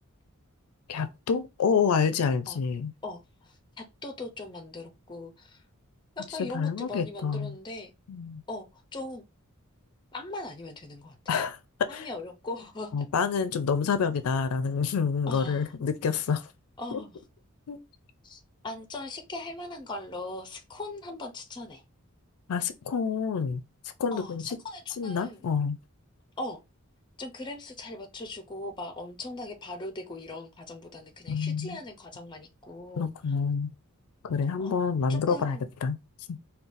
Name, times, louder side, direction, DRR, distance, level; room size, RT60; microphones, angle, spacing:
voice 1, 0.9-2.9 6.5-7.5 8.1-8.4 11.3-11.6 11.9-12.1 12.9-16.5 16.9-17.0 17.7-17.8 22.5-23.6 24.0-24.6 25.0-25.8 31.3-31.8 33.0-33.7 34.2-36.0 36.3-36.4, left 5 dB, 80° left, 0.4 m, -28 dB
voice 2, 3.0-5.6 6.2-7.9 8.5-9.2 10.1-11.4 11.9-12.9 15.3-15.6 16.8-17.2 18.2-21.8 24.1-25.4 26.4-26.6 27.2-33.1 34.6-34.7 35.1-35.6, left 2 dB, 20° left, 0.6 m, -40 dB
3.8 x 2.3 x 2.5 m
head